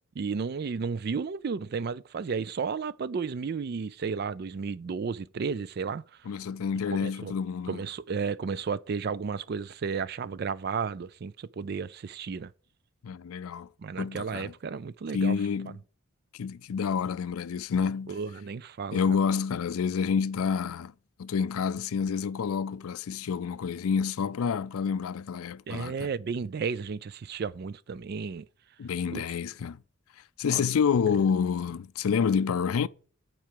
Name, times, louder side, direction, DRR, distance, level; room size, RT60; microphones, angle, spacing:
voice 1, 0.2-6.0 6.9-7.3 7.7-12.5 13.8-15.4 18.1-19.2 25.7-28.5 29.1-29.2 30.5-30.6, right 5 dB, 45° right, 0.3 m, -33 dB
voice 2, 6.3-7.8 13.0-13.7 14.0-14.5 15.1-15.8 16.3-18.2 18.9-20.9 21.2-26.1 28.8-29.8 30.4-32.9, left 6 dB, 75° left, 0.4 m, -28 dB
7.5 x 4.6 x 6.7 m
head